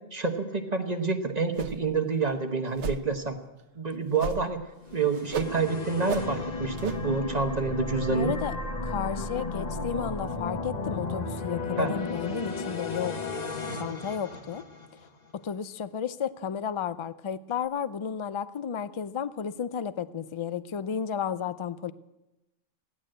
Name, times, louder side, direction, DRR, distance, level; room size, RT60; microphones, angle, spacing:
voice 1, 0.1-3.4 3.8-4.6 4.9-8.3 11.8-12.0, right 4 dB, 35° right, 5 dB, 1.2 m, -28 dB
sound 1, 1.6-2.0 2.2-2.3 2.8-3.1 4.2-4.6 4.9-5.6 6.1-6.3 6.8-7.0, right 5 dB, 65° right, 1.1 m, -34 dB
sound 2, 4.9-15.1, left 3 dB, 35° left, 1.1 m, -34 dB
voice 2, 8.1-8.5 8.8-13.2 13.7-14.6 15.3-21.9, left 8 dB, 55° left, 14 dB, 0.3 m, -33 dB
16.0 x 11.0 x 7.7 m, 0.98 s
omnidirectional pair, 1.3 m